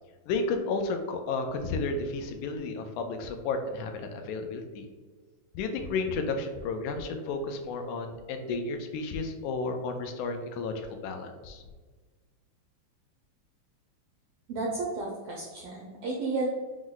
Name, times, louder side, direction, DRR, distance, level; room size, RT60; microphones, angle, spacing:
voice 1, 0.3-4.8 5.6-10.7 11.0-11.6, left 3 dB, 85° left, 6 dB, 2.0 m, -32 dB
voice 2, 14.5-16.5, right 3 dB, 85° right, -2 dB, 1.4 m, -32 dB
6.0 x 2.1 x 3.8 m, 1.4 s
omnidirectional pair, 3.4 m